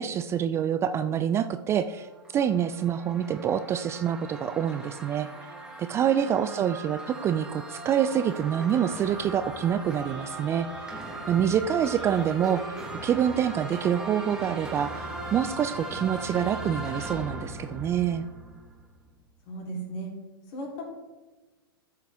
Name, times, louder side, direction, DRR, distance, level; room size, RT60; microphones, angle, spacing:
voice 1, 0.0-5.3 5.8-10.7 11.3-18.2, right 9 dB, 20° right, 11 dB, 0.4 m, -26 dB
sound 1, 2.0-19.0, right 2 dB, 5° right, 1.6 m, -39 dB
voice 2, 6.2-6.6 19.5-20.1 20.5-20.8, right 1 dB, 45° left, -1 dB, 3.5 m, -37 dB
12.5 x 6.8 x 3.6 m, 1.2 s
hypercardioid pair, 105°, 12 cm